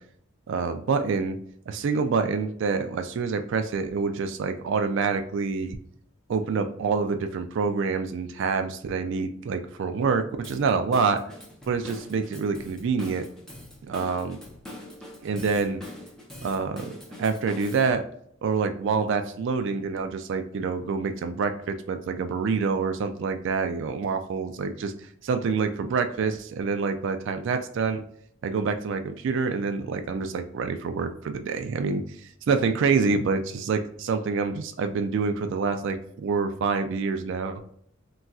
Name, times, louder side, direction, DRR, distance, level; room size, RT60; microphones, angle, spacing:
voice 1, 0.5-1.4 1.7-5.8 6.3-11.2 11.7-13.3 13.9-14.4 15.2-15.8 16.4-18.0 18.4-24.9 25.2-28.0 28.4-37.6, right 5 dB, 65° right, 8 dB, 0.3 m, -27 dB
Drum kit / Drum, 10.4-17.9, left 1 dB, 5° left, 0.7 m, -43 dB
4.0 x 2.3 x 2.3 m, 0.66 s
head